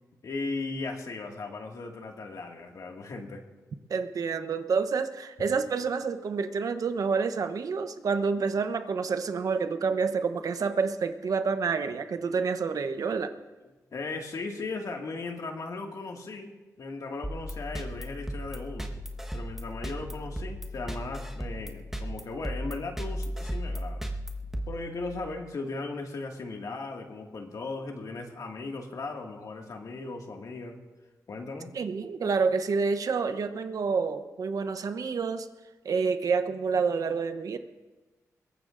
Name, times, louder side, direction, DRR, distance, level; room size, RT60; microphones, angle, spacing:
voice 1, 0.2-3.4 13.6-18.9 19.3-24.1 24.7-30.8 31.3-31.7, left 3 dB, 65° left, 2 dB, 2.0 m, -37 dB
voice 2, 3.9-13.3 31.7-35.5 35.8-37.6, right 5 dB, 70° right, 9 dB, 0.9 m, -28 dB
sound 1, 17.2-25.4, equal, 5° right, 1.3 m, -36 dB
22.0 x 17.5 x 2.6 m, 1.2 s
cardioid pair, 80°, 6 cm